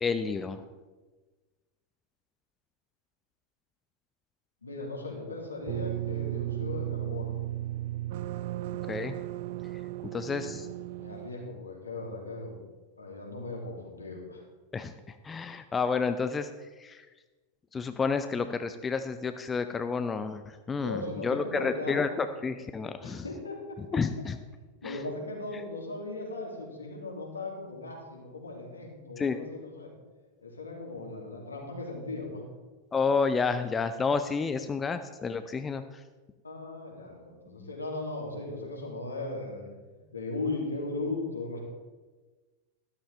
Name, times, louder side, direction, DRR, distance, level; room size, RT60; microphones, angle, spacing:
voice 1, 0.0-0.6 8.9-9.2 10.1-10.7 14.7-16.5 16.8-17.1 17.7-23.2 23.9-24.4 24.8-25.0 29.2-29.4 32.9-35.8, left 5 dB, 15° left, 10 dB, 0.5 m, -30 dB
voice 2, 4.6-7.3 10.0-10.6 10.9-12.6 13.0-14.4 20.8-22.3 23.0-24.0 24.8-29.9 30.4-32.4 36.4-39.6 40.1-41.6, left 2 dB, 80° left, -1 dB, 2.6 m, -38 dB
sound 1, 5.7-11.3, right 15 dB, 50° right, 0.4 m, -35 dB
12.5 x 12.5 x 3.4 m, 1.3 s
figure-of-eight pair, 90°, 0 cm